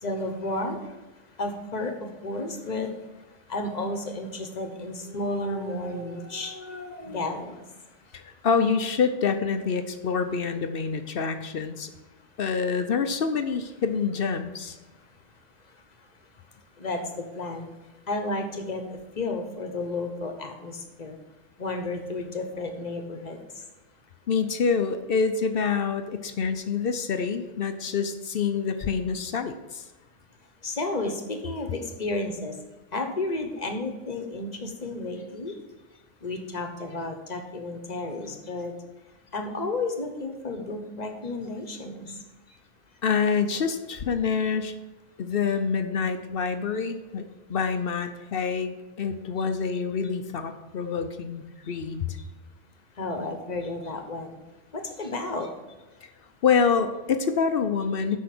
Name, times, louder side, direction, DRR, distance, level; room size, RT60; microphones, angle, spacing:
voice 1, 0.0-0.8 1.4-2.9 3.5-7.6 16.8-17.7 18.1-18.8 19.1-21.2 21.6-23.4 30.6-32.6 32.9-35.6 36.2-38.7 39.3-42.2 53.0-54.4 54.7-55.5, left 2 dB, 35° left, 5 dB, 1.1 m, -32 dB
voice 2, 8.1-11.9 12.4-14.8 24.3-29.8 43.0-44.7 45.2-52.2 56.0-56.1 56.4-58.2, left 5 dB, 55° left, 8 dB, 0.8 m, -26 dB
8.5 x 5.6 x 5.9 m, 1.1 s
omnidirectional pair, 1.3 m